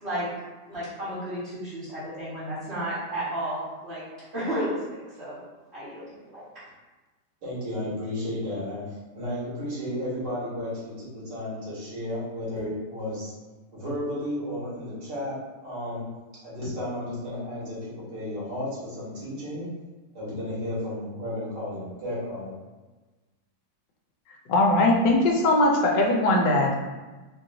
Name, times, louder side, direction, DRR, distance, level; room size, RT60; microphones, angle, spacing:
voice 1, 0.7-4.0 4.3-5.4 5.7-6.6, equal, 40° right, -13 dB, 1.3 m, -32 dB
voice 2, 7.4-13.3 13.7-15.4 15.6-16.1 16.4-19.7 20.1-22.5, left 1 dB, 70° right, -11 dB, 2.4 m, -33 dB
voice 3, 24.5-26.8, left 2 dB, 75° left, 0 dB, 1.3 m, -20 dB
4.4 x 2.8 x 2.6 m, 1.2 s
omnidirectional pair, 2.0 m